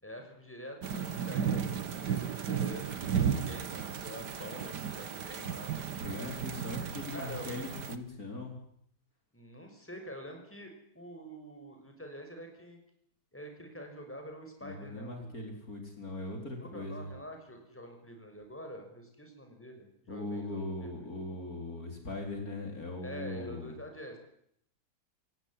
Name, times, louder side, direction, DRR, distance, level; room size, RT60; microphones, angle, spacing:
voice 1, 0.0-6.0 7.1-7.5 9.3-12.8 13.3-15.3 16.6-20.9 23.0-24.2, equal, 5° left, 4 dB, 5.6 m, -46 dB
sound 1, 0.8-8.0, right 7 dB, 60° right, 2.0 m, -34 dB
voice 2, 6.0-8.6 14.6-17.1 20.1-23.8, left 2 dB, 45° left, 2 dB, 4.8 m, -40 dB
26.5 x 18.5 x 10.0 m, 0.72 s
omnidirectional pair, 2.1 m